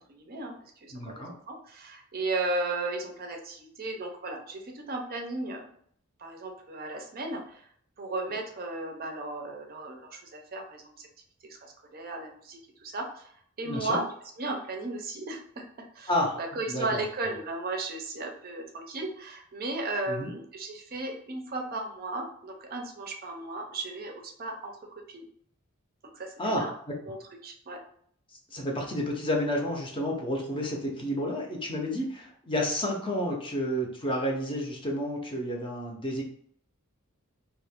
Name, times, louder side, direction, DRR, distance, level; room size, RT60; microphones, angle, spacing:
voice 1, 0.1-0.5 0.8-5.6 6.2-7.7 8.0-11.1 11.5-13.3 13.6-14.1 14.4-16.1 16.4-24.7 25.1-25.3 26.1-26.7 27.1-27.2 27.4-27.8, right 2 dB, 45° right, 2 dB, 0.5 m, -35 dB
voice 2, 0.9-1.3 13.6-14.0 16.1-16.4 16.7-17.4 20.1-20.3 26.4-26.9 28.5-36.2, equal, 25° left, 0 dB, 0.6 m, -30 dB
2.8 x 2.4 x 3.5 m, 0.63 s
head